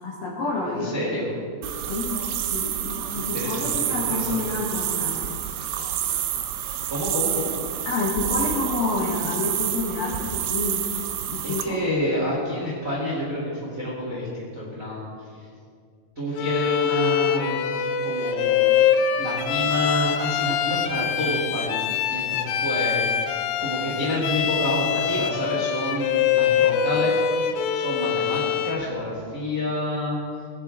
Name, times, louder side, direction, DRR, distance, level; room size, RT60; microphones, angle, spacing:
voice 1, 0.0-1.4 1.9-2.2 2.5-5.4 7.8-10.9 11.3-11.8, left 2 dB, 60° left, -5 dB, 2.5 m, -29 dB
voice 2, 0.6-1.2 3.2-4.6 6.9-7.5 11.4-15.1 16.1-17.6 18.0-18.6 19.1-21.8 22.1-23.0 23.6-27.1 27.7-30.2, equal, 35° right, -6 dB, 1.4 m, -28 dB
sound 1, 1.6-11.6, right 10 dB, 85° right, 2.6 m, -28 dB
Bowed string instrument, 16.4-28.9, left 8 dB, 90° left, 3.3 m, -24 dB
20.0 x 10.0 x 3.6 m, 2.2 s
omnidirectional pair, 5.9 m